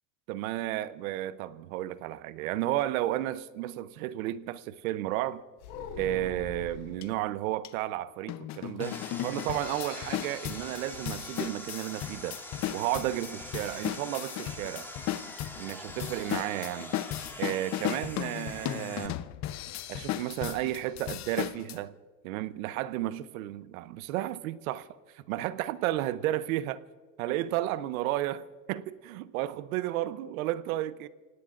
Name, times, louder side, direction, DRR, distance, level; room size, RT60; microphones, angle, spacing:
voice 1, 0.3-5.4 6.0-12.4 12.7-14.9 15.6-16.9 17.4-19.2 19.9-21.9 22.2-24.9 25.1-26.8 27.2-28.4 28.7-31.1, right 14 dB, 80° right, 0.8 m, -33 dB
sound 1, 5.6-7.0 8.8-9.7 10.0-10.1 10.5-10.7, left 6 dB, 75° left, 5.2 m, -43 dB
sound 2, 7.0-7.1 7.6-7.7 8.3-21.8, left 13 dB, 40° left, 0.8 m, -36 dB
Sawing, 8.8-19.1, left 1 dB, 5° left, 2.7 m, -44 dB
29.5 x 17.5 x 2.5 m
supercardioid pair, 105°, 41 cm